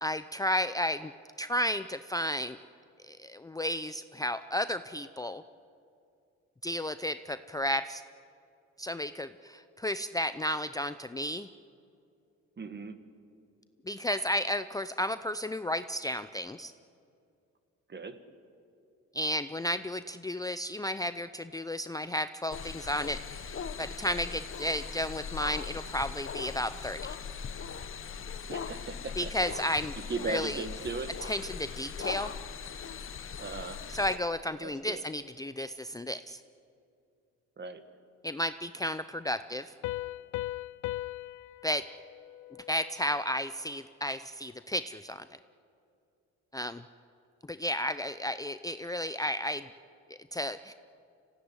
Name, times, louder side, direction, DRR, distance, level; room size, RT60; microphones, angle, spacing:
voice 1, 0.0-1.1 1.4-2.6 3.1-5.4 6.6-8.0 8.8-11.5 13.9-16.7 19.1-27.0 29.2-29.9 30.3-30.6 31.2-32.3 33.9-36.4 38.2-39.7 41.6-41.8 42.7-45.2 46.5-46.8 47.5-49.7 50.3-50.7, equal, 10° left, 11 dB, 0.6 m, -33 dB
voice 2, 12.6-13.0 17.9-18.2 28.5-29.3 30.1-31.1 33.4-33.8 34.6-35.0 37.6-37.8, right 4 dB, 35° right, 10 dB, 1.8 m, -37 dB
sound 1, 22.5-34.2, left 6 dB, 45° left, 1.2 m, -40 dB
Piano, 39.8-43.3, left 17 dB, 75° left, 0.6 m, -39 dB
25.5 x 16.5 x 9.7 m, 2.5 s
cardioid pair, 90°, 30 cm